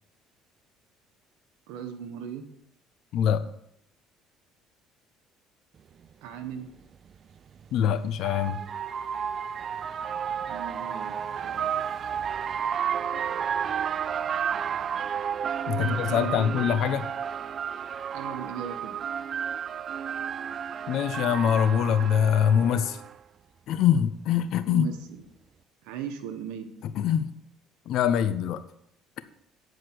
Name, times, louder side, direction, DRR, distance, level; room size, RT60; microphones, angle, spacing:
voice 1, 1.7-2.5 6.2-6.7 10.5-11.2 11.4-11.6 15.7-16.7 18.1-19.0 24.7-25.2 25.8-26.7, right 8 dB, 85° right, 7 dB, 1.2 m, -37 dB
voice 2, 3.1-3.4 7.7-8.6 13.1-13.2 15.7-17.1 20.9-23.0 23.7-24.9 26.8-27.3 27.9-28.6, left 9 dB, 65° left, 12 dB, 0.7 m, -24 dB
sound 1, 6.0-6.1 7.6-23.2, right 8 dB, 45° right, 0.3 m, -32 dB
9.4 x 4.9 x 6.1 m, 0.74 s
supercardioid pair, 100°, 0 cm